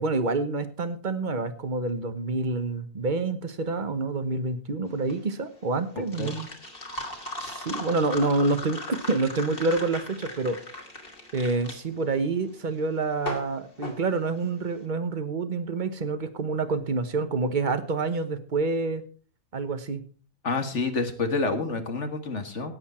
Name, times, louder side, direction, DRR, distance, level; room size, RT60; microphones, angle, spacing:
voice 1, 0.0-6.5 7.4-10.6 11.3-19.0 19.5-20.0, right 3 dB, 35° right, 11 dB, 1.2 m, -27 dB
sound 1, 4.9-14.7, left 2 dB, 40° left, 3.0 m, -38 dB
voice 2, 6.0-6.4 20.4-22.7, left 3 dB, 55° left, 7 dB, 2.0 m, -28 dB
17.5 x 8.2 x 4.4 m, 0.40 s
omnidirectional pair, 1.4 m